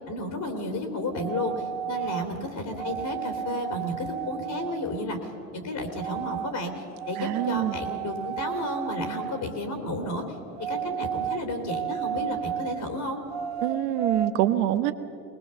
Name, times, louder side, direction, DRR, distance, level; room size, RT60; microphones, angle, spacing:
voice 1, 0.1-5.2 5.5-10.2 10.6-13.2, left 1 dB, 40° left, 5 dB, 3.1 m, -32 dB
sound 1, 1.1-2.3 2.8-4.9 6.0-6.5 6.9-9.5 10.5-12.8 13.3-14.3, right 9 dB, 35° right, 2.4 m, -33 dB
voice 2, 7.2-7.8 13.6-14.9, right 13 dB, 70° right, 11 dB, 1.3 m, -25 dB
21.5 x 19.5 x 6.8 m, 2.8 s
supercardioid pair, 115°, 46 cm